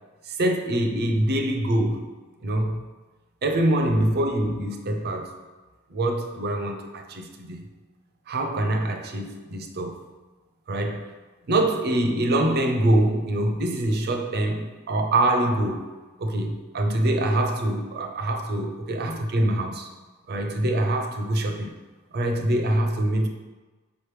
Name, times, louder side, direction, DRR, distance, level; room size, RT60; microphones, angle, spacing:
voice 1, 0.3-2.1 2.4-2.8 3.4-5.4 5.9-7.6 8.3-10.0 10.7-11.1 11.5-15.9 16.2-19.9 20.3-21.7 22.1-23.3, right 1 dB, 45° right, 0.5 m, -24 dB
5.1 x 3.0 x 3.2 m
head